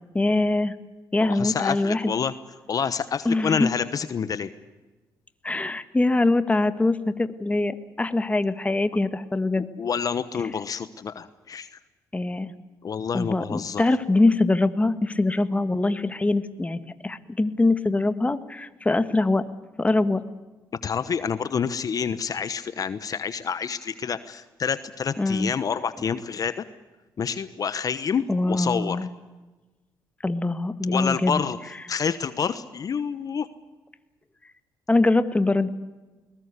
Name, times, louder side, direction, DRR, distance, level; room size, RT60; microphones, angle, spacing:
voice 1, 0.1-0.7 1.1-2.1 3.2-3.7 5.4-9.7 12.1-12.5 13.1-19.4 19.8-20.2 25.2-25.5 28.3-29.1 30.2-31.4 34.9-35.7, left 2 dB, 15° left, 12 dB, 1.6 m, -23 dB
voice 2, 1.2-2.3 2.7-4.5 9.8-11.7 12.8-13.8 20.8-26.6 27.2-29.0 30.9-31.6 31.9-33.5, left 6 dB, 50° left, 13 dB, 1.1 m, -28 dB
22.0 x 20.0 x 8.3 m, 1.2 s
supercardioid pair, 70°, 8 cm